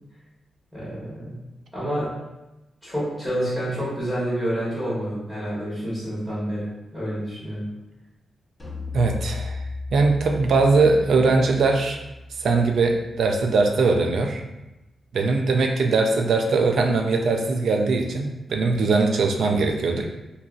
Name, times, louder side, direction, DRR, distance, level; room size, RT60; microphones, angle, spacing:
voice 1, 0.7-1.4 1.7-2.1 2.8-7.6, equal, 10° right, -10 dB, 1.3 m, -28 dB
sound 1, 8.6-14.0, left 3 dB, 20° left, 0.6 m, -36 dB
voice 2, 8.9-9.6 9.9-12.0 12.4-14.4 15.1-20.1, right 3 dB, 70° right, 3 dB, 0.4 m, -21 dB
2.8 x 2.6 x 2.4 m, 0.98 s
wide cardioid pair, 130°, 0 cm